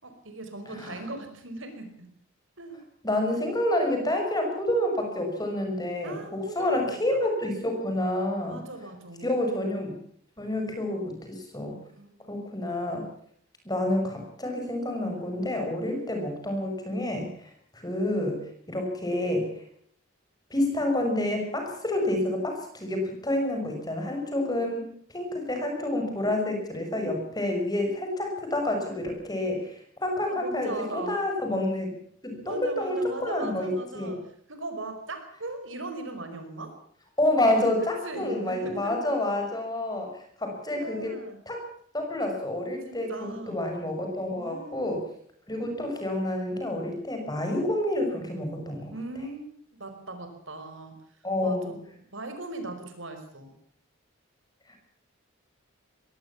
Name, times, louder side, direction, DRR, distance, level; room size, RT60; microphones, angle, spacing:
voice 1, 0.0-2.1 2.6-2.8 3.9-4.1 6.0-7.0 8.5-9.3 11.9-12.2 26.2-26.3 30.2-31.2 32.4-34.2 34.5-36.8 38.0-39.0 40.7-41.4 42.9-43.6 44.4-45.0 48.9-49.5 49.8-50.9 51.4-51.6 52.1-53.5, right 2 dB, 65° right, 7 dB, 5.1 m, -39 dB
voice 2, 0.7-1.0 3.0-8.6 9.2-10.0 10.4-11.8 12.3-13.1 13.6-18.4 18.7-19.6 20.5-31.9 32.2-34.2 37.2-41.2 41.5-41.6 41.9-45.1 45.5-48.9 51.2-51.7 54.7-54.8, left 1 dB, 20° left, 3 dB, 5.9 m, -28 dB
22.0 x 17.5 x 7.2 m, 0.62 s
head